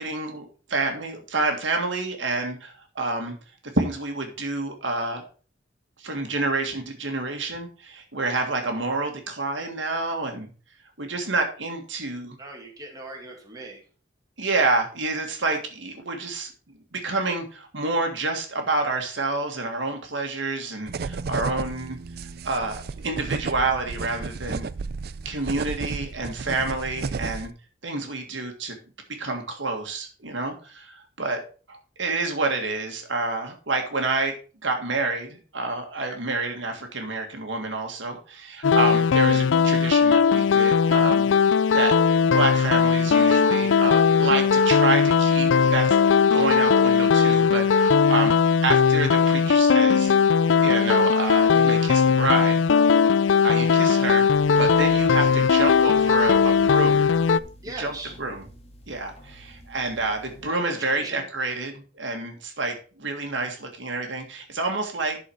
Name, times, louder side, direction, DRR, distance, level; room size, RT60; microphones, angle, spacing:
voice 1, 0.0-3.3 3.7-5.2 6.0-10.5 11.0-12.4 14.4-16.5 16.9-22.0 22.4-24.7 25.2-27.5 27.8-28.8 29.1-31.4 31.7-34.3 34.6-41.3 41.7-42.0 42.2-46.0 46.3-48.3 48.6-50.1 50.6-52.6 53.4-54.2 54.6-57.0 57.8-58.4 58.9-65.2, right 3 dB, 75° right, 4 dB, 1.8 m, -28 dB
voice 2, 12.4-13.8 49.4-49.8 57.6-58.1 60.4-61.2, right 2 dB, 20° right, 0 dB, 2.2 m, -39 dB
sound 1, 20.9-27.5, right 4 dB, 55° right, 0.4 m, -33 dB
sound 2, 38.6-57.4, left 6 dB, 75° left, 0.4 m, -19 dB
sound 3, 54.3-60.5, equal, 35° left, 1.8 m, -47 dB
11.5 x 4.9 x 4.6 m, 0.37 s
head